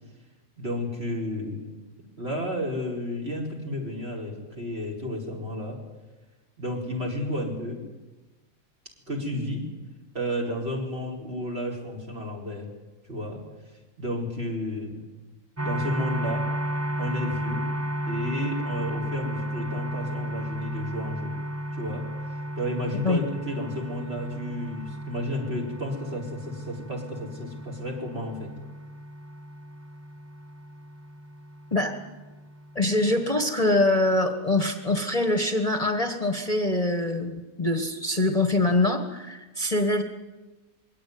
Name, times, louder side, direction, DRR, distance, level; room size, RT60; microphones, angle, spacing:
voice 1, 0.6-1.7 2.2-5.8 6.6-7.8 9.1-9.7 10.1-12.7 13.1-13.4 14.0-15.0 15.6-16.5 17.0-17.7 18.0-21.4 21.7-28.5, left 1 dB, 45° right, -2 dB, 5.0 m, -32 dB
sound 1, 15.6-33.3, equal, 20° right, 0.4 m, -34 dB
voice 2, 32.7-40.0, left 2 dB, 25° left, 5 dB, 1.6 m, -24 dB
22.5 x 17.5 x 9.5 m, 1.2 s
omnidirectional pair, 1.5 m